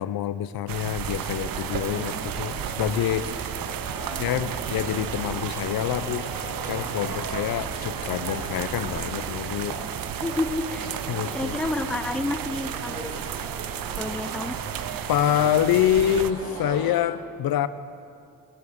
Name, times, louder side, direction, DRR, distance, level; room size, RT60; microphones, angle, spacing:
voice 1, 0.0-3.6 4.2-6.2 6.7-9.8 11.1-11.6 15.1-17.7, left 10 dB, 85° left, 14 dB, 0.6 m, -26 dB
sound 1, 0.7-16.3, right 10 dB, 70° right, 0.6 m, -33 dB
sound 2, 0.9-16.9, right 3 dB, 90° right, 2.0 m, -38 dB
sound 3, 2.4-6.3 6.6-11.2, right 3 dB, 55° right, 2.4 m, -47 dB
voice 2, 10.2-10.9 11.3-13.2 14.0-14.6, left 2 dB, 5° left, 9 dB, 0.4 m, -29 dB
19.5 x 7.1 x 6.3 m, 2.4 s
wide cardioid pair, 130°, 35 cm